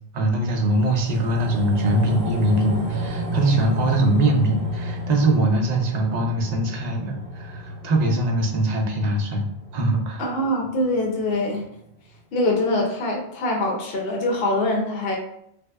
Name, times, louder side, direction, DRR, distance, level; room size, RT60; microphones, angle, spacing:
voice 1, 0.1-9.5 9.7-10.2, right 1 dB, 45° right, 1 dB, 0.6 m, -22 dB
sound 1, 0.6-11.2 11.5-11.6, right 1 dB, 75° right, 0.9 m, -31 dB
voice 2, 10.2-11.7 12.3-15.2, left 1 dB, 60° left, 0 dB, 0.9 m, -23 dB
3.4 x 2.0 x 3.3 m, 0.71 s
omnidirectional pair, 1.1 m